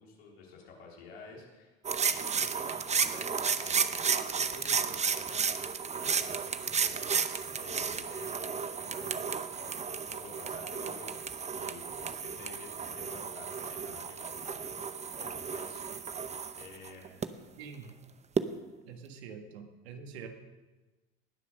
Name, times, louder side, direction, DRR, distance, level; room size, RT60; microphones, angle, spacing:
voice 1, 0.0-1.7 2.0-15.8 16.6-17.2, left 4 dB, 85° left, -2 dB, 4.0 m, -51 dB
sound 1, 1.8-17.3 18.4-18.5, right 6 dB, 20° right, 0.8 m, -33 dB
voice 2, 17.6-17.9 18.9-20.3, right 6 dB, 85° right, 5 dB, 1.8 m, -45 dB
19.5 x 7.3 x 6.5 m, 1.2 s
supercardioid pair, 90°, 31 cm